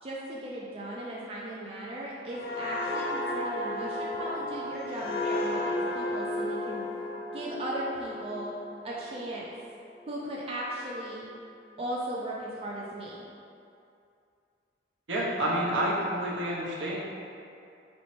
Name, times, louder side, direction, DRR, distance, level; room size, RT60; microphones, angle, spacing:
voice 1, 0.0-6.9 7.3-8.5 8.8-9.4 10.1-11.2 11.8-13.2, right 1 dB, 30° right, -5 dB, 0.3 m, -37 dB
sound 1, 2.3-9.8 10.2-10.4, left 1 dB, 55° left, 0.3 m, -33 dB
voice 2, 15.1-17.0, right 1 dB, 75° right, -5 dB, 0.7 m, -29 dB
4.2 x 3.0 x 3.1 m, 2.6 s
head